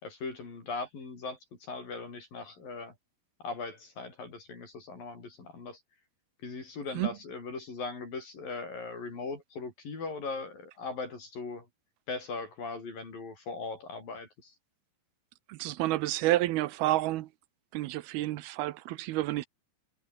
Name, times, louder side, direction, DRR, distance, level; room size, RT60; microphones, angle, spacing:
voice 1, 0.0-2.9 3.4-5.8 6.4-11.7 12.1-14.5, left 4 dB, 60° left, 7.8 m, -39 dB
voice 2, 15.5-17.3 17.7-19.5, right 16 dB, 85° right, 2.8 m, -29 dB
omnidirectional pair, 4.4 m